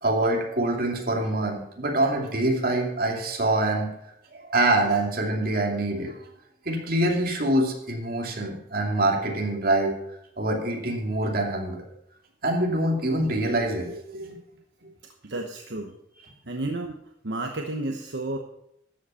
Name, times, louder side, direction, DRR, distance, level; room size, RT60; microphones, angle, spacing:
voice 1, 0.0-3.9 4.3-6.1 6.6-10.0 10.4-11.9 12.4-14.4 14.8-14.9, right 1 dB, 55° right, 1 dB, 2.6 m, -25 dB
voice 2, 15.2-15.9 16.5-17.0 17.2-18.4, right 2 dB, 75° right, 3 dB, 1.1 m, -31 dB
13.5 x 7.8 x 5.7 m, 0.80 s
head